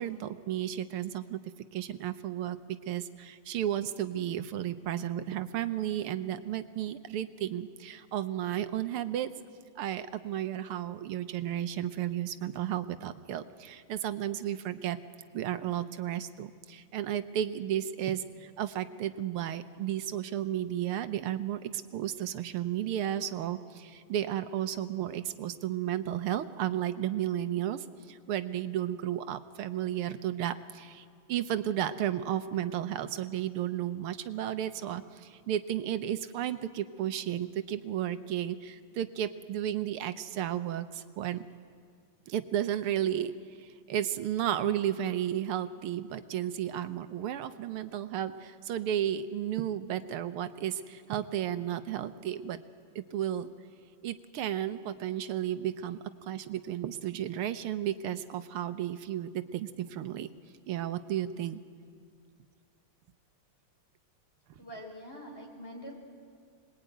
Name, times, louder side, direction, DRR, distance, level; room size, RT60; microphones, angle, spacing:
voice 1, 0.0-1.4 1.7-9.3 9.8-15.0 15.3-41.5 42.3-43.3 43.6-52.6 52.9-53.5 54.0-60.3 60.7-61.6, right 11 dB, 90° right, 11 dB, 1.8 m, -33 dB
voice 2, 64.6-65.9, equal, 30° left, 0 dB, 4.4 m, -44 dB
26.0 x 21.0 x 9.2 m, 2.1 s
omnidirectional pair, 2.4 m